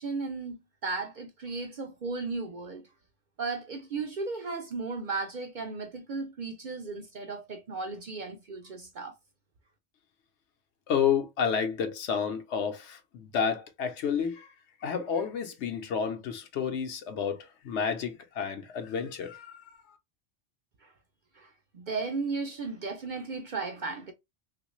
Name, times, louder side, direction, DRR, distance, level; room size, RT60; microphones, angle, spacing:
voice 1, 0.0-2.8 3.4-9.2 20.8-20.9 21.3-24.1, right 4 dB, 55° right, 0.6 m, -35 dB
voice 2, 10.9-14.5 14.8-19.6, left 7 dB, 75° left, 0.9 m, -30 dB
3.0 x 2.5 x 2.9 m
omnidirectional pair, 1.2 m